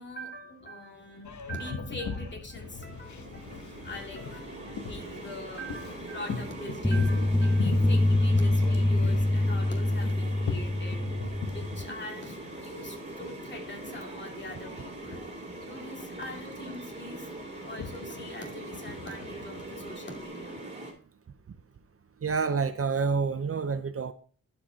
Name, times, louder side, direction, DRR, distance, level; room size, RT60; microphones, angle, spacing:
voice 1, 0.0-11.0 11.5-15.3 15.7-17.3 17.7-20.6, equal, 35° left, 2.4 m, -43 dB
Boat Water vehicle, 1.2-20.3, left 4 dB, 70° left, 0.9 m, -41 dB
sound 1, 2.6-20.9, right 2 dB, 20° right, 2.6 m, -42 dB
sound 2, 6.8-11.8, left 1 dB, 5° left, 0.4 m, -25 dB
voice 2, 22.2-24.1, right 5 dB, 50° right, 0.6 m, -28 dB
12.0 x 5.2 x 2.7 m
cardioid pair, 70°, 31 cm